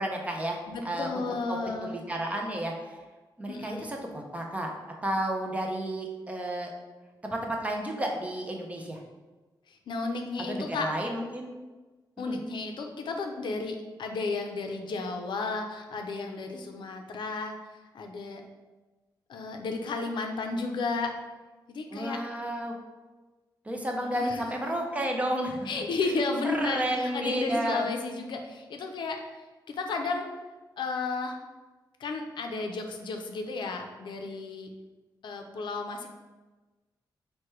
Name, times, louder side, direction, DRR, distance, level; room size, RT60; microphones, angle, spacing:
voice 1, 0.0-1.2 1.8-2.9 3.4-4.7 5.0-6.7 7.2-9.0 10.5-11.5 12.2-12.4 21.9-22.7 23.7-25.8 26.4-27.9, right 1 dB, 15° right, 1 dB, 0.5 m, -32 dB
voice 2, 0.7-1.9 3.5-3.8 9.7-10.9 12.2-17.6 17.9-18.4 19.3-21.1 21.7-22.2 24.1-24.4 25.6-30.3 30.8-31.4 32.0-34.7 35.2-36.1, left 3 dB, 80° left, 4 dB, 0.5 m, -33 dB
4.8 x 2.2 x 4.4 m, 1.2 s
wide cardioid pair, 155°, 8 cm